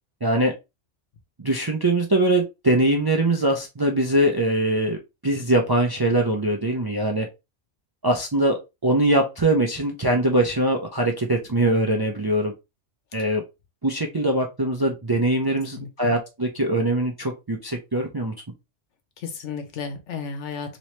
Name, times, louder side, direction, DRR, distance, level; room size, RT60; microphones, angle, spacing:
voice 1, 0.2-0.5 1.4-5.0 5.2-7.3 8.0-12.5 13.1-13.4 13.8-18.3, right 1 dB, 35° right, 0.4 m, -22 dB
voice 2, 15.8-16.1 19.2-20.8, left 5 dB, 80° left, 1.1 m, -33 dB
3.1 x 3.0 x 3.0 m
omnidirectional pair, 1.2 m